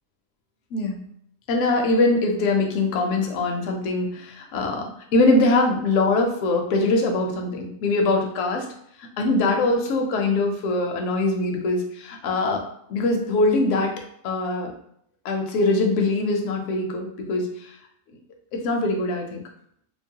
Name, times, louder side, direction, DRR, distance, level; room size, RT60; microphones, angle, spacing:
voice 1, 1.5-8.7 9.0-12.6 12.9-14.0 14.2-14.7 15.2-17.7 18.5-19.4, left 2 dB, 70° left, 2 dB, 0.9 m, -22 dB
2.9 x 2.0 x 2.7 m, 0.68 s
omnidirectional pair, 1.4 m